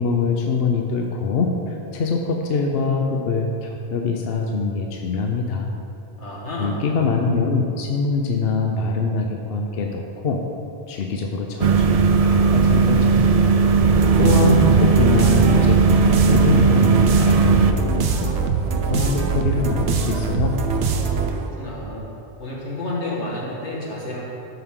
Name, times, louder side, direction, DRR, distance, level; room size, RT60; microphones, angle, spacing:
voice 1, 0.0-5.7 6.6-10.4 10.9-13.2 14.2-18.3 18.7-20.5, left 4 dB, 65° left, 2 dB, 0.9 m, -24 dB
voice 2, 6.2-6.8 21.3-22.1 22.4-24.3, left 1 dB, 85° left, -4 dB, 2.0 m, -30 dB
sound 1, 11.6-17.7, right 5 dB, 60° right, 0.3 m, -16 dB
sound 2, 13.8-21.5, right 5 dB, 80° right, 1.0 m, -22 dB
12.5 x 5.8 x 3.7 m, 2.6 s
omnidirectional pair, 1.1 m